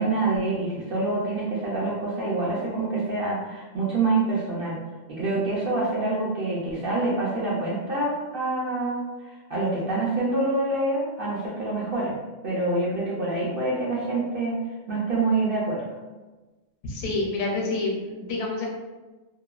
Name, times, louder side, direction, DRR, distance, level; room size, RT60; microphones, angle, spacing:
voice 1, 0.0-4.8 5.2-12.2 12.4-14.6 14.9-15.8, right 2 dB, 60° right, -6 dB, 0.6 m, -26 dB
voice 2, 16.8-18.7, left 3 dB, 75° left, -1 dB, 1.0 m, -28 dB
2.8 x 2.2 x 2.3 m, 1.2 s
omnidirectional pair, 1.4 m